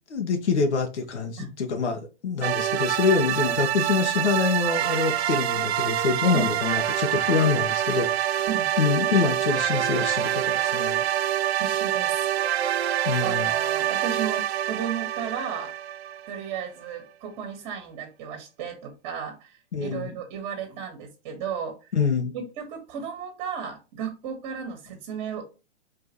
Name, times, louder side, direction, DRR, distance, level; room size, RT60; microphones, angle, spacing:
voice 1, 0.1-8.5 8.8-11.0 13.0-13.5 19.7-20.1 21.9-22.3, left 5 dB, 90° left, 1.2 m, -25 dB
sound 1, 2.4-16.6, right 11 dB, 70° right, 0.6 m, -26 dB
voice 2, 11.6-12.3 13.2-15.7 16.3-21.9 22.3-25.5, right 7 dB, 35° right, 1.6 m, -34 dB
4.6 x 3.9 x 3.0 m
hypercardioid pair, 135°, 33 cm